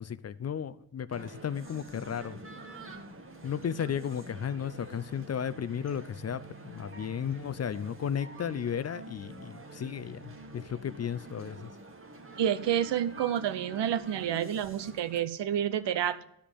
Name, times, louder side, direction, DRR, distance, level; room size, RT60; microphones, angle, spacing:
voice 1, 0.0-2.4 3.4-11.7, left 8 dB, 35° left, 0.5 m, -34 dB
Male speech man speaking, 1.1-15.2, right 2 dB, 30° right, 1.7 m, -47 dB
voice 2, 12.4-16.2, right 10 dB, 70° right, 0.9 m, -29 dB
11.5 x 5.1 x 7.1 m
cardioid pair, 80°, 44 cm